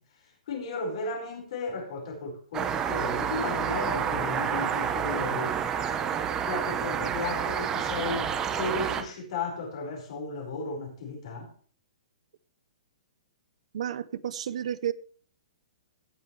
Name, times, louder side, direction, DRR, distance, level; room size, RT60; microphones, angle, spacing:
voice 1, 0.5-5.6 6.4-11.5, left 3 dB, 45° left, 4.7 m, -34 dB
sound 1, 2.5-9.0, right 8 dB, 10° right, 0.8 m, -29 dB
voice 2, 13.7-14.9, right 10 dB, 55° right, 0.6 m, -31 dB
16.5 x 8.2 x 3.2 m
hypercardioid pair, 170°, 4 cm